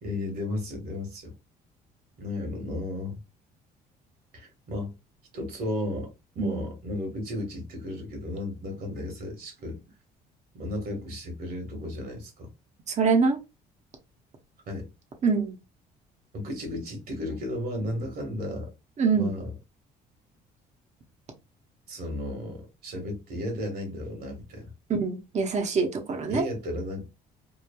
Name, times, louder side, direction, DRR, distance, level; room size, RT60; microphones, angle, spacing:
voice 1, 0.0-1.3 2.2-3.2 4.3-5.0 5.3-9.8 10.5-12.5 14.7-14.9 16.3-18.7 19.1-19.5 21.9-24.7 26.3-27.1, left 1 dB, 65° right, 1.4 m, -34 dB
voice 2, 13.0-13.4 15.2-15.6 19.0-19.3 24.9-26.4, right 5 dB, 45° right, 0.7 m, -24 dB
3.0 x 2.3 x 2.2 m
cardioid pair, 110°, 17 cm